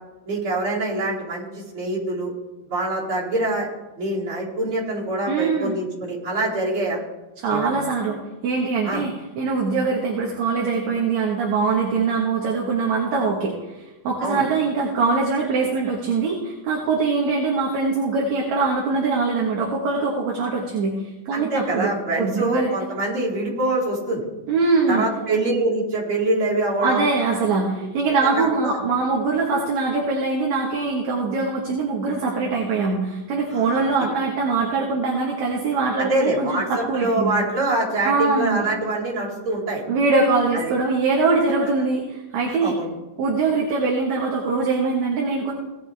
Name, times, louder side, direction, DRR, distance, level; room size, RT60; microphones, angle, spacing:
voice 1, 0.3-2.3 2.7-3.7 4.0-7.0 7.5-7.8 8.8-9.0 14.2-14.4 21.3-24.2 24.9-27.0 28.2-28.8 33.5-33.8 36.0-39.8 40.5-40.7 41.6-41.7 42.5-42.9, right 2 dB, 35° right, -8 dB, 5.1 m, -25 dB
voice 2, 5.3-5.7 7.4-8.2 8.4-21.0 21.3-22.7 24.5-25.1 26.8-37.3 38.0-38.7 39.9-42.8 43.2-45.5, right 4 dB, 60° right, -2 dB, 2.6 m, -22 dB
18.0 x 9.4 x 3.5 m, 1.1 s
omnidirectional pair, 4.2 m